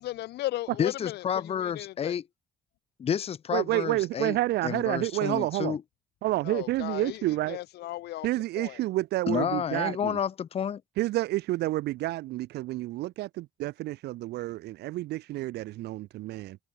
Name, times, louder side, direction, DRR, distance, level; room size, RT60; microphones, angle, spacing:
voice 1, 0.0-2.2 6.4-8.3 8.6-8.8, left 16 dB, 75° left, 3.4 m, -36 dB
voice 2, 0.8-2.2 3.0-4.4 4.6-5.8 9.3-10.8, left 8 dB, 35° left, 0.8 m, -30 dB
voice 3, 3.5-5.8 6.2-7.6 8.2-10.2 11.0-16.6, right 17 dB, 80° right, 1.4 m, -29 dB
cardioid pair, 110°, 17 cm